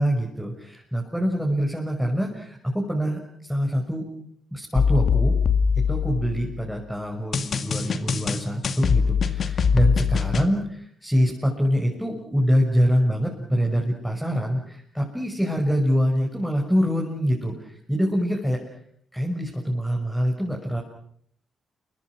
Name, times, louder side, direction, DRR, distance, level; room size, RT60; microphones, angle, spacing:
voice 1, 0.0-4.0 4.5-5.4 5.7-18.6 19.1-20.8, equal, ahead, 0 dB, 6.3 m, -25 dB
sound 1, 4.7-6.6 7.3-10.5, left 6 dB, 55° left, 2.2 m, -22 dB
29.0 x 24.0 x 6.2 m, 0.66 s
hypercardioid pair, 40°, 0 cm